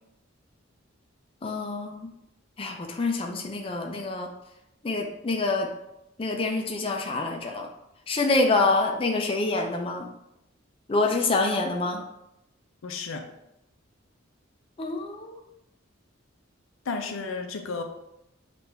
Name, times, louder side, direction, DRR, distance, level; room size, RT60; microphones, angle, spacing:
voice 1, 1.4-2.1 2.6-4.3 4.8-5.7 6.2-7.7 8.1-10.1 10.9-12.0 14.8-15.4, left 3 dB, 25° left, 2 dB, 0.5 m, -26 dB
voice 2, 12.8-13.3 16.9-17.8, left 4 dB, 85° left, 5 dB, 0.6 m, -32 dB
6.1 x 2.5 x 3.3 m, 0.84 s
head